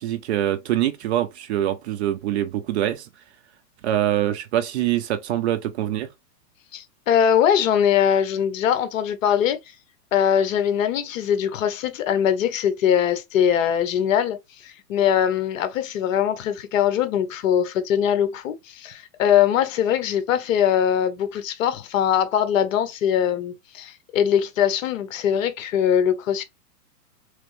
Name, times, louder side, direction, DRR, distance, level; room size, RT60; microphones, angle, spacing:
voice 1, 0.0-3.1 3.8-6.1, right 12 dB, 45° right, 0.6 m, -24 dB
voice 2, 6.7-9.6 10.1-14.4 14.6-26.4, left 9 dB, 55° left, 0.9 m, -21 dB
3.4 x 3.2 x 3.1 m
hypercardioid pair, 145°, 48 cm